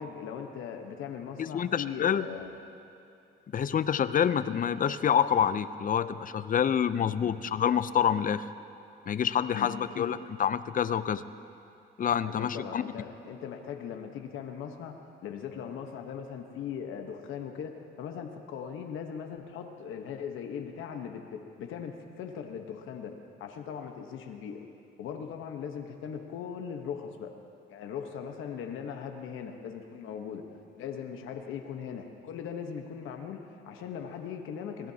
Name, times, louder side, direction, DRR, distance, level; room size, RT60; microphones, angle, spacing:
voice 1, 0.0-2.5 7.2-7.3 9.5-10.1 12.3-15.0 15.2-23.1 23.4-24.6 25.0-27.3 27.7-30.5 30.8-34.9, left 7 dB, 85° left, 4 dB, 1.1 m, -39 dB
voice 2, 1.4-2.2 3.5-8.4 9.1-11.2 12.0-12.8, left 8 dB, 45° left, 14 dB, 0.6 m, -27 dB
25.0 x 18.0 x 2.8 m, 2.6 s
cardioid pair, 90°, 20 cm